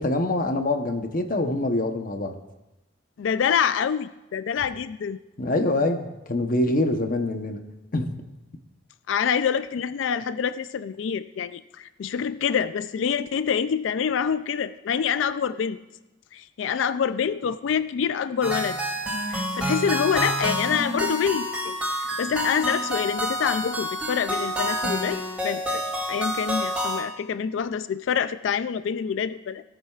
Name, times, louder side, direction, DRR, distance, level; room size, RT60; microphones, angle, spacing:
voice 1, 0.0-2.3 5.4-7.6 7.9-8.1, left 2 dB, 45° left, 6 dB, 0.9 m, -25 dB
voice 2, 3.2-5.2 9.1-15.8 16.3-18.8 19.3-29.6, left 7 dB, 75° left, 13 dB, 0.4 m, -26 dB
sound 1, 18.4-27.0, equal, 5° right, 2.6 m, -28 dB
17.0 x 8.9 x 2.4 m, 0.98 s
head